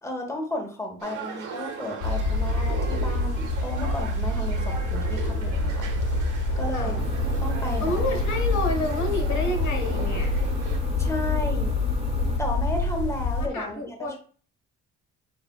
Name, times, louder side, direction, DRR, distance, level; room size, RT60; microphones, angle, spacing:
voice 1, 0.0-5.9 6.6-7.0 7.4-8.0 11.0-11.7 12.4-14.2, left 1 dB, 10° left, 2 dB, 1.1 m, -33 dB
sound 1, 1.0-10.8, right 5 dB, 75° right, 1.1 m, -39 dB
sound 2, 2.0-13.5, left 2 dB, 90° left, 0.5 m, -26 dB
sound 3, 7.0-12.4, right 3 dB, 20° right, 0.5 m, -38 dB
voice 2, 7.8-10.3 13.4-14.2, left 2 dB, 70° left, 3 dB, 1.1 m, -29 dB
6.7 x 2.4 x 2.3 m, 0.40 s
cardioid pair, 90°, 30 cm